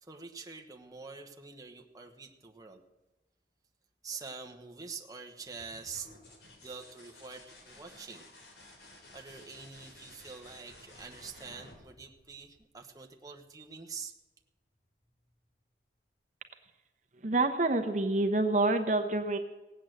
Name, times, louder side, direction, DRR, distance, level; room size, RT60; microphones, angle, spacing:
voice 1, 0.0-2.8 4.0-6.2 6.6-8.3 9.1-14.1, right 5 dB, 20° right, 3 dB, 1.0 m, -45 dB
sound 1, 5.4-13.0 14.7-15.3, left 2 dB, 70° left, 3.4 m, -55 dB
voice 2, 17.2-19.4, right 2 dB, 40° right, 6 dB, 0.9 m, -27 dB
17.5 x 8.5 x 7.8 m, 1.1 s
head